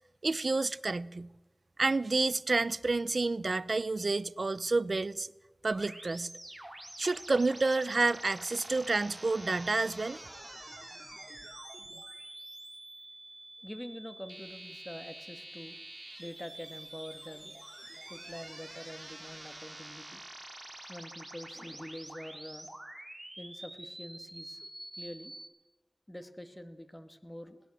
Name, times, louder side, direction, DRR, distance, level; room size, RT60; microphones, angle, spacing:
voice 1, 0.2-1.3 1.8-5.3 5.6-6.3 7.0-10.2, right 3 dB, 70° right, 0.7 m, -29 dB
sound 1, 5.7-25.5, right 1 dB, 25° right, 4.8 m, -47 dB
voice 2, 13.6-17.5 18.1-20.2 20.9-22.7 23.4-24.7 25.0-25.3 26.1-27.6, equal, 15° left, 2.2 m, -46 dB
20.0 x 18.0 x 7.5 m
wide cardioid pair, 50°, 0 cm